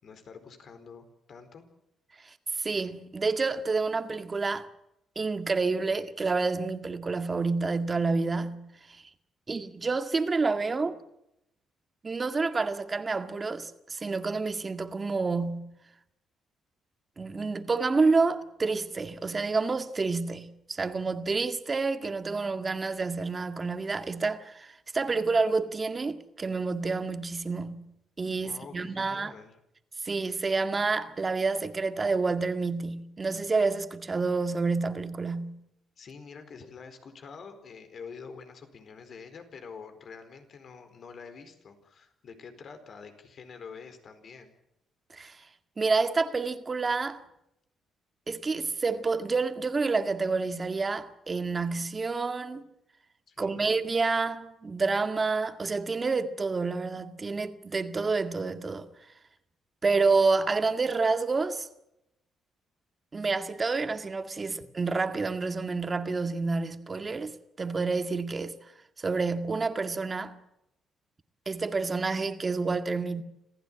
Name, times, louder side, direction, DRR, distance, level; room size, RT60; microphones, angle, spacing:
voice 1, 0.0-1.6 28.4-29.6 36.0-44.5 53.3-53.8, left 5 dB, 55° left, 4.5 m, -47 dB
voice 2, 2.6-4.7 5.2-8.7 9.5-11.0 12.0-15.7 17.2-29.3 30.0-35.6 45.1-45.4 45.8-47.2 48.3-52.6 53.4-58.9 59.8-61.7 63.1-68.5 69.0-70.4 71.5-73.2, right 4 dB, 30° right, 2.0 m, -28 dB
26.5 x 15.5 x 9.0 m
cardioid pair, 90°, 0 cm